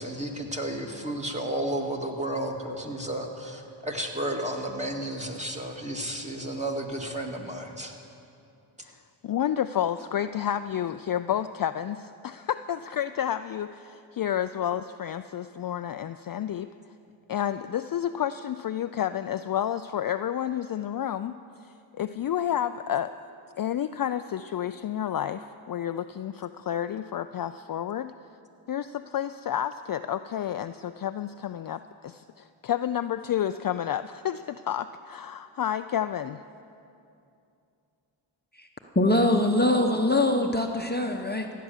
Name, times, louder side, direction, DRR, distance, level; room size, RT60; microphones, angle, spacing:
voice 1, 0.0-7.9, right 1 dB, 15° right, 1 dB, 2.1 m, -32 dB
voice 2, 8.8-16.7 17.3-21.4 22.0-23.1 23.6-28.1 28.7-36.4, left 10 dB, 45° left, 10 dB, 0.4 m, -30 dB
voice 3, 38.9-41.5, left 1 dB, 20° left, 3 dB, 1.0 m, -23 dB
15.5 x 9.4 x 7.3 m, 2.6 s
cardioid pair, 50°, 50 cm